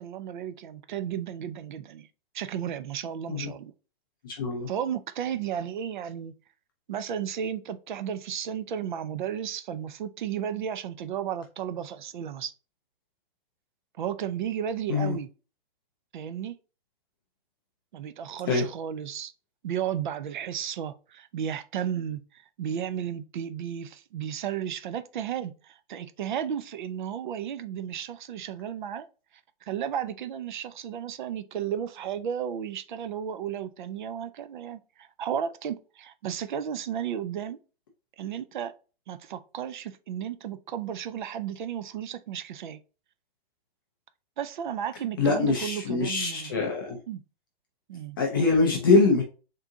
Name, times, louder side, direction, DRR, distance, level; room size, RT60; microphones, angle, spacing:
voice 1, 0.0-2.1 2.3-3.7 4.7-6.3 6.9-12.5 14.0-15.3 16.1-16.5 17.9-19.3 19.6-29.1 29.7-37.6 38.2-38.7 39.1-42.8 44.4-46.6 47.1-47.2 47.9-48.2, right 9 dB, 50° right, 0.5 m, -33 dB
voice 2, 4.2-4.7 14.9-15.2 18.5-18.6 45.2-47.0 48.2-49.2, left 3 dB, 25° left, 0.4 m, -23 dB
3.7 x 2.7 x 3.5 m
hypercardioid pair, 165°, 30 cm